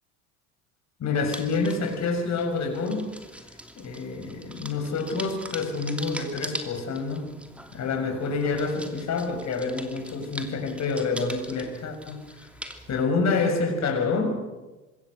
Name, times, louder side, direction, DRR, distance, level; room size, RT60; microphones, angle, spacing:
voice 1, 1.0-3.1 3.7-7.3 7.7-12.2 12.9-14.4, left 4 dB, 35° left, 5 dB, 6.6 m, -27 dB
sound 1, 1.3-13.1, equal, 5° right, 2.8 m, -42 dB
26.0 x 21.5 x 6.7 m, 1.2 s
figure-of-eight pair, 75°, 44 cm